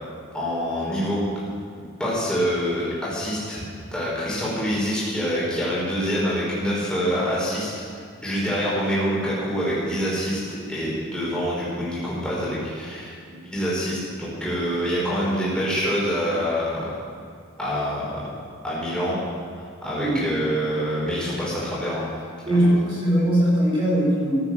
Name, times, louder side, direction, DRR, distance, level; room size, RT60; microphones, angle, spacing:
voice 1, 0.3-1.2 2.0-3.6 3.9-16.9 17.6-18.2 18.6-19.2 19.5-22.1 22.5-22.7, equal, 5° left, -7 dB, 5.1 m, -26 dB
voice 2, 22.4-24.4, right 1 dB, 25° right, -7 dB, 4.8 m, -20 dB
15.0 x 9.7 x 7.7 m, 2.2 s
head